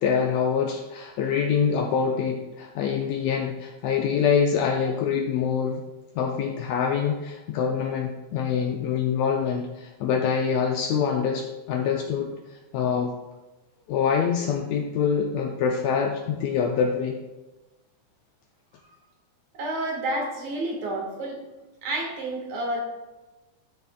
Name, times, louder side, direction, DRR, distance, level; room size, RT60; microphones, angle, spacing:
voice 1, 0.0-5.8 6.2-12.3 12.7-13.1 13.9-17.2, left 7 dB, 75° left, 2 dB, 1.8 m, -25 dB
voice 2, 19.5-21.4 21.8-22.8, right 1 dB, 70° right, 0 dB, 2.9 m, -30 dB
12.5 x 6.6 x 2.3 m, 1.1 s
omnidirectional pair, 3.3 m